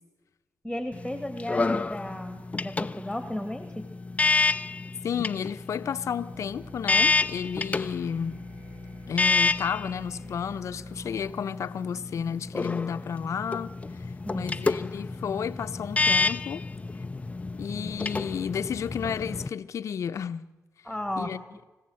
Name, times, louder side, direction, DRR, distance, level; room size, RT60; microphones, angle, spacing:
voice 1, 0.6-3.9 14.2-14.6 20.8-21.3, left 1 dB, ahead, 1.9 m, -34 dB
sound 1, 0.9-19.5, left 3 dB, 25° left, 0.6 m, -29 dB
voice 2, 5.0-8.4 9.1-14.0 14.3-16.6 17.6-20.4 21.2-21.4, left 7 dB, 65° left, 0.9 m, -32 dB
sound 2, 6.3-11.3, right 4 dB, 55° right, 4.4 m, -51 dB
24.5 x 16.0 x 7.8 m
cardioid pair, 85°, 6 cm